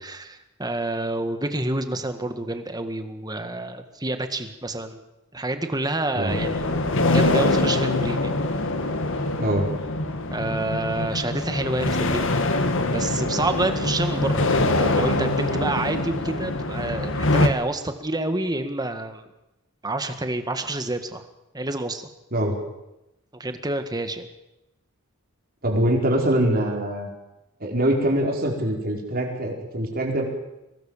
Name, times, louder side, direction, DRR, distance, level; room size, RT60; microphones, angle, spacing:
voice 1, 0.0-5.0 5.3-6.8 7.1-8.3 10.3-12.4 12.9-19.3 19.8-21.2 21.5-22.0 23.3-24.3, right 2 dB, 15° right, 8 dB, 1.8 m, -28 dB
sound 1, 6.3-17.5, left 2 dB, 60° left, 2.0 m, -24 dB
voice 2, 25.6-27.1 27.6-30.3, right 1 dB, 40° right, 1 dB, 5.0 m, -23 dB
23.5 x 18.5 x 7.4 m, 0.92 s
head